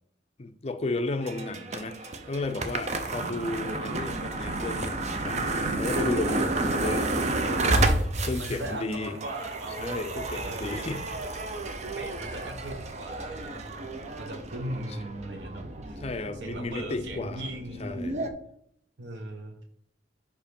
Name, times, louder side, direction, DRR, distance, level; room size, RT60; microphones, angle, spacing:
voice 1, 0.4-7.9 8.2-9.2 9.8-11.0 11.3-11.7 16.0-17.5 17.8-18.2, left 2 dB, 35° left, 0.6 m, -34 dB
sound 1, 1.2-18.3, right 2 dB, 40° right, 0.7 m, -31 dB
voice 2, 8.4-9.8 10.3-10.8 12.0-13.7 14.2-16.0 16.4-18.0 19.0-19.6, right 1 dB, 75° right, 1.0 m, -39 dB
5.3 x 4.9 x 5.2 m
head